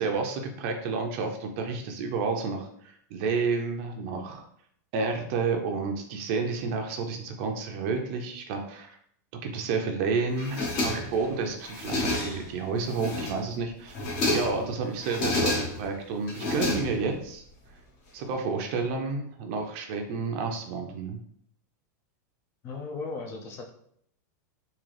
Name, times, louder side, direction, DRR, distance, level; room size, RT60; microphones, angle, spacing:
voice 1, 0.0-4.4 4.9-9.0 9.4-14.0 14.3-17.4 18.1-21.2, right 4 dB, 40° right, 4 dB, 0.5 m, -30 dB
sound 1, 10.4-11.3 11.6-12.5 12.9-13.5 13.9-14.6 15.0-15.9 16.3-17.2, left 2 dB, 45° left, 1.2 m, -29 dB
voice 2, 22.6-23.7, left 3 dB, 30° left, 3 dB, 0.4 m, -37 dB
3.7 x 2.8 x 3.2 m, 0.68 s
supercardioid pair, 165°, 10 cm